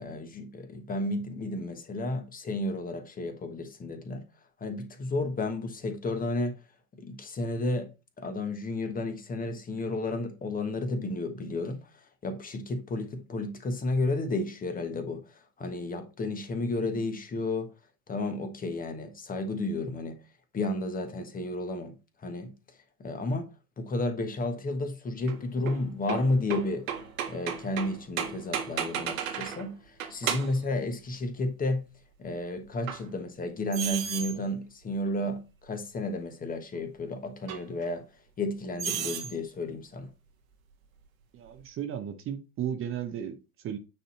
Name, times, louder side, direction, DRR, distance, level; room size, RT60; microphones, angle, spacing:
voice 1, 0.0-4.2 4.6-6.6 7.0-7.9 8.2-17.7 18.1-20.2 20.5-22.5 23.0-23.5 23.8-26.9 27.3-31.8 32.2-38.0 38.4-40.1, left 2 dB, 20° left, 1.3 m, -32 dB
sound 1, 25.3-29.7 30.0-30.7 32.9-33.0 33.7-34.4 35.1-35.2 37.5-37.6 38.8-39.3, right 8 dB, 65° right, 1.6 m, -33 dB
voice 2, 41.3-43.8, right 9 dB, 30° right, 1.0 m, -35 dB
9.2 x 4.2 x 4.2 m
figure-of-eight pair, 85°, 44 cm